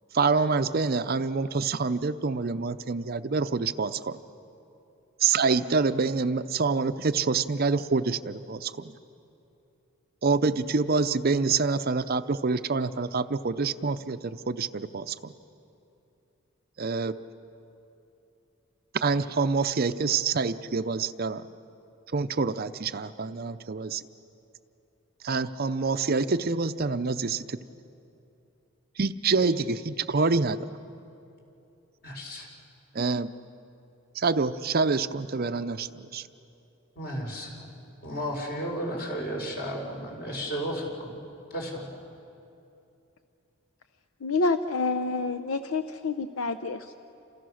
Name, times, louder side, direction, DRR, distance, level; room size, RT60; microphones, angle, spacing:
voice 1, 0.1-4.2 5.2-9.0 10.2-15.3 16.8-17.2 18.9-21.5 22.1-24.0 25.2-27.6 29.0-30.7 32.9-33.3 34.1-36.3, right 4 dB, 45° right, 11 dB, 0.6 m, -26 dB
voice 2, 32.0-32.5 36.9-37.7 38.0-41.2 41.5-41.9, equal, 45° left, 0 dB, 4.7 m, -33 dB
voice 3, 44.2-46.9, left 3 dB, 70° left, 10 dB, 0.7 m, -28 dB
28.5 x 27.5 x 6.4 m, 2.7 s
head